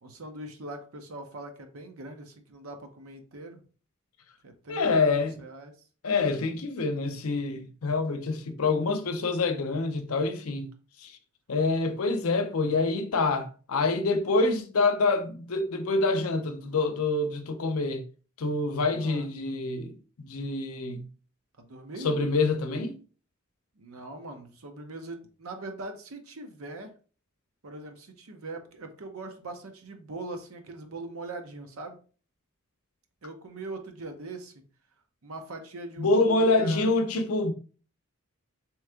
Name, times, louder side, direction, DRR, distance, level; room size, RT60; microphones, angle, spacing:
voice 1, 0.0-3.6 4.4-5.9 18.9-19.3 21.6-22.1 23.8-26.9 27.6-32.0 33.2-34.6 35.2-36.9, right 2 dB, 75° right, 0.7 m, -41 dB
voice 2, 4.7-5.3 6.0-10.7 11.0-11.1 11.5-18.0 18.4-19.9 20.2-21.0 22.0-23.0 36.0-37.5, left 3 dB, 80° left, 0.6 m, -26 dB
3.7 x 3.1 x 3.4 m
head